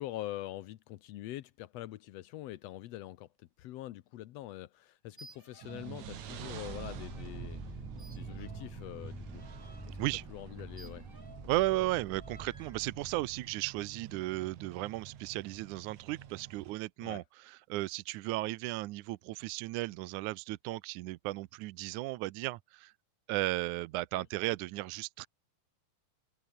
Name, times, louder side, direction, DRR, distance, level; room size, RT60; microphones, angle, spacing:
voice 1, 0.0-7.6 8.0-9.4 9.9-10.0 10.3-11.0 17.0-17.2 24.1-24.2, left 15 dB, 80° left, 1.5 m, -44 dB
sound 1, 5.1-6.0 6.2-7.3 8.0-11.6 12.1-12.8, right 2 dB, 15° right, 4.5 m, -57 dB
sound 2, 5.6-16.7, right 10 dB, 60° right, 3.0 m, -48 dB
sound 3, 6.1-13.9, equal, ahead, 5.6 m, -48 dB
voice 2, 11.5-22.9 23.3-25.3, right 18 dB, 75° right, 1.9 m, -35 dB
open air
omnidirectional pair, 3.9 m